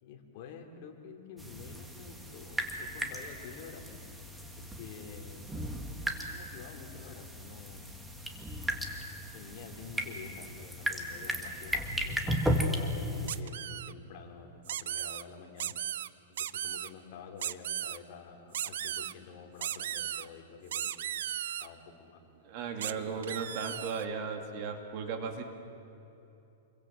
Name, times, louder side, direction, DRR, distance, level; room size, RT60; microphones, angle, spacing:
voice 1, 0.0-4.3 4.6-5.5 6.2-8.0 9.2-15.7 16.4-22.2 22.9-23.5, left 6 dB, 45° left, 3 dB, 3.2 m, -49 dB
sound 1, 1.4-13.4, equal, 5° right, 1.6 m, -36 dB
sound 2, 13.3-13.9 14.7-15.2 15.6-16.1 16.4-16.9 17.4-18.0 18.5-19.1 19.6-20.3 20.7-21.7 22.8-22.9 23.2-24.1, right 11 dB, 70° right, 0.7 m, -36 dB
voice 2, 22.4-25.4, right 5 dB, 40° right, 5 dB, 2.4 m, -36 dB
28.5 x 23.0 x 7.7 m, 2.9 s
supercardioid pair, 165°, 0 cm